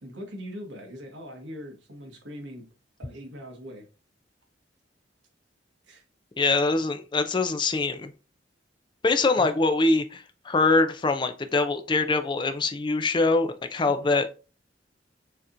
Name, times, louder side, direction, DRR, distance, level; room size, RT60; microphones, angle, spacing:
voice 1, 0.0-2.7 3.0-3.8 5.9-6.0 9.4-9.5 13.9-14.1, equal, 80° right, 1.2 m, -41 dB
voice 2, 6.4-8.1 9.0-14.3, left 3 dB, 25° left, 0.4 m, -23 dB
6.5 x 2.9 x 2.5 m
head